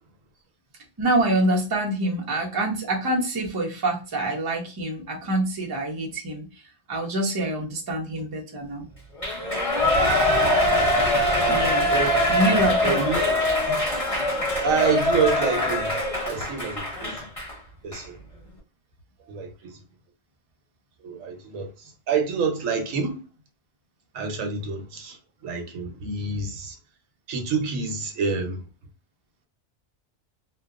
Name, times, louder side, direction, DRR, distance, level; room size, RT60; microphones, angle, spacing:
voice 1, 1.0-6.5 6.9-8.9 11.5-11.9 12.3-13.1, right 1 dB, 25° right, 0.5 m, -26 dB
Shout / Cheering, 9.2-17.5 17.9-18.0, left 1 dB, 30° left, 1.3 m, -23 dB
voice 2, 12.8-13.2 14.6-16.0 16.2-17.2 17.8-18.2 19.3-19.7 21.0-23.2 24.1-25.2 25.4-26.7 27.3-28.6, right 5 dB, 85° right, 1.1 m, -27 dB
2.8 x 2.2 x 2.4 m
omnidirectional pair, 1.3 m